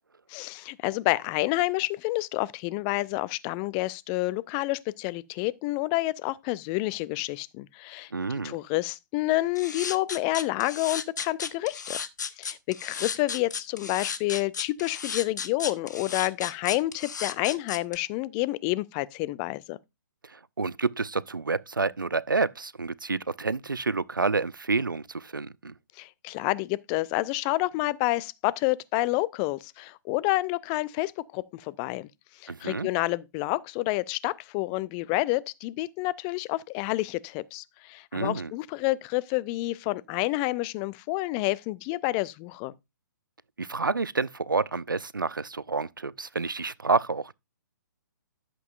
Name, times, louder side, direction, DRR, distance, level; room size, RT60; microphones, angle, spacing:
voice 1, 0.3-8.1 8.4-12.0 12.4-19.8 26.0-32.1 32.4-42.7, left 19 dB, 25° left, 0.4 m, -29 dB
voice 2, 8.1-8.6 20.2-25.7 32.5-32.9 38.1-38.5 43.6-47.3, right 4 dB, 85° right, 0.4 m, -29 dB
sound 1, 9.6-18.0, left 6 dB, 60° left, 1.0 m, -34 dB
12.0 x 7.6 x 2.5 m
figure-of-eight pair, 125°, 11 cm